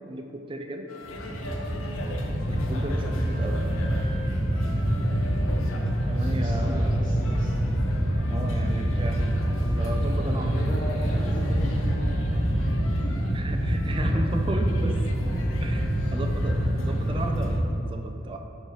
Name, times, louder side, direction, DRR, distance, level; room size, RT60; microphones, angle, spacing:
voice 1, 0.1-0.9 2.5-3.6 6.1-6.9 8.3-9.2 9.6-10.6 13.3-15.0 15.6-18.4, right 1 dB, 25° right, 4 dB, 0.4 m, -34 dB
sound 1, 0.9-17.6, left 1 dB, 85° left, 0.7 m, -41 dB
sound 2, 1.0-17.6, equal, 5° right, 1.3 m, -26 dB
voice 2, 6.3-7.6 10.2-12.7 13.0-13.3 15.9-16.2, equal, 40° left, -5 dB, 0.9 m, -38 dB
7.5 x 4.6 x 4.7 m, 2.8 s
head